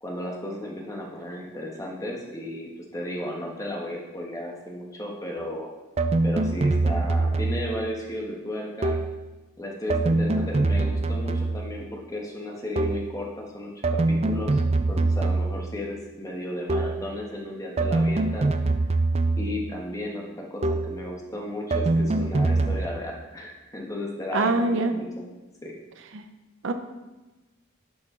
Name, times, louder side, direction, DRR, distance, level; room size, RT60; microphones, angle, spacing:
voice 1, 0.0-5.7 6.2-9.0 9.6-14.6 14.9-18.5 19.4-25.2 25.6-25.8, left 1 dB, 15° left, -1 dB, 1.3 m, -34 dB
sound 1, 6.0-7.8 8.8-9.2 9.9-11.8 12.8-13.2 13.8-15.7 16.7-17.1 17.8-19.7 20.6-21.0 21.7-22.9, right 2 dB, 30° right, 0.4 m, -24 dB
voice 2, 24.3-24.9 26.1-26.2 26.6-26.7, right 3 dB, 70° right, 7 dB, 0.6 m, -23 dB
11.0 x 5.9 x 3.8 m, 1.1 s
head